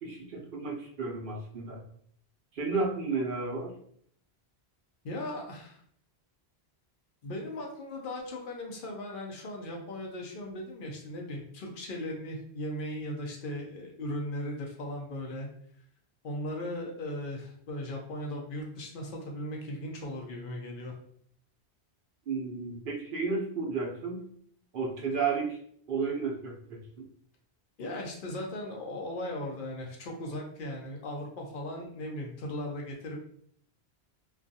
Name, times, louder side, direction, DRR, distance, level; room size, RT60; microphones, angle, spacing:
voice 1, 0.0-1.8 2.5-3.7 22.3-24.2 24.7-25.6 25.9-26.8, right 4 dB, 60° right, -2 dB, 0.7 m, -32 dB
voice 2, 5.0-5.8 7.2-15.5 16.2-20.9 27.8-33.2, left 1 dB, 60° left, 0 dB, 0.7 m, -37 dB
2.4 x 2.2 x 2.6 m, 0.64 s
omnidirectional pair, 1.1 m